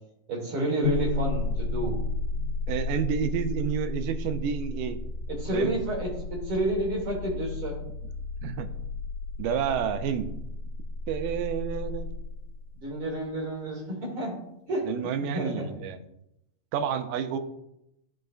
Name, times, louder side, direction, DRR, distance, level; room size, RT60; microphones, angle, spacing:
voice 1, 0.3-2.0 5.3-7.8 12.7-14.4 14.7-15.7, right 1 dB, 45° right, -2 dB, 2.7 m, -30 dB
sound 1, 0.8-12.9, left 3 dB, 90° left, 1.2 m, -33 dB
voice 2, 2.7-5.0 5.5-5.7 8.4-8.7 9.4-10.3 11.1-12.1 14.9-16.0 16.7-17.4, right 8 dB, 80° right, 8 dB, 2.2 m, -29 dB
13.0 x 5.7 x 2.5 m, 0.83 s
omnidirectional pair, 3.9 m